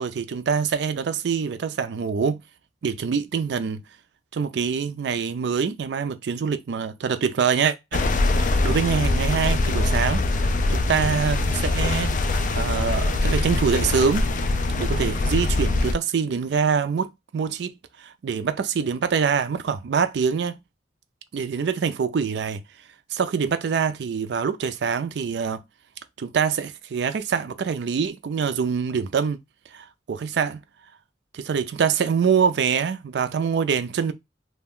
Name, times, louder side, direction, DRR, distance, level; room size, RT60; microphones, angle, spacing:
voice 1, 0.0-2.4 2.8-3.8 4.3-8.0 8.6-10.2 10.7-14.3 14.8-17.1 17.3-20.6 21.3-22.6 23.1-25.6 26.2-29.4 29.7-30.6 31.3-34.1, right 6 dB, 70° right, 0.4 m, -25 dB
sound 1, 7.9-15.9, left 2 dB, 45° left, 0.3 m, -23 dB
2.4 x 2.1 x 3.5 m
head